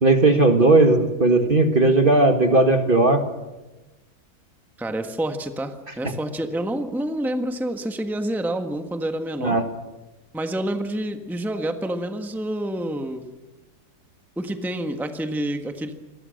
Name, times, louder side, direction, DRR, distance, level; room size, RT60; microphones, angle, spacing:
voice 1, 0.0-3.2 9.4-9.6, right 2 dB, 35° right, 6 dB, 1.7 m, -17 dB
voice 2, 4.8-9.6 10.3-13.2 14.4-15.9, right 1 dB, ahead, 6 dB, 1.4 m, -28 dB
28.0 x 22.0 x 6.6 m, 1.1 s
omnidirectional pair, 1.7 m